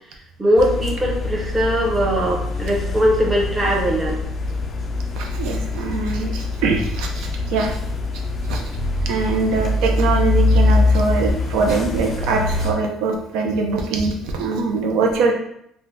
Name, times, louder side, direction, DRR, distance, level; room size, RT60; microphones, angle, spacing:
voice 1, 0.4-4.2, equal, 10° right, -2 dB, 0.6 m, -20 dB
sound 1, 0.6-12.7, left 2 dB, 30° left, 0.3 m, -23 dB
voice 2, 5.2-7.8 8.1-8.6 9.1-15.3, right 3 dB, 75° right, 1 dB, 0.5 m, -22 dB
2.6 x 2.1 x 3.4 m, 0.75 s
cardioid pair, 140°, 0 cm